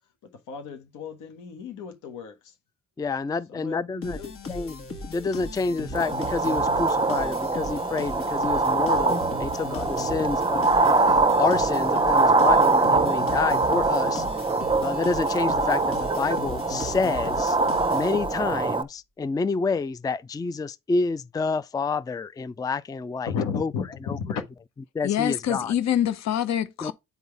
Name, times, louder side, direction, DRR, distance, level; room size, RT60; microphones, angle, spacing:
voice 1, 0.5-2.3 3.5-4.3 23.3-23.8 24.2-24.4, left 6 dB, 90° left, 1.5 m, -33 dB
voice 2, 3.0-4.2 4.5-14.2 14.8-17.6 17.9-24.4 24.9-25.7 26.8-26.9, left 4 dB, 15° left, 0.4 m, -29 dB
sound 1, 4.0-18.6, left 2 dB, 45° left, 1.7 m, -37 dB
sound 2, 5.9-18.8, right 3 dB, 15° right, 0.8 m, -23 dB
voice 3, 25.0-26.9, left 11 dB, 65° left, 0.8 m, -25 dB
9.1 x 4.0 x 3.5 m
cardioid pair, 90°, 30 cm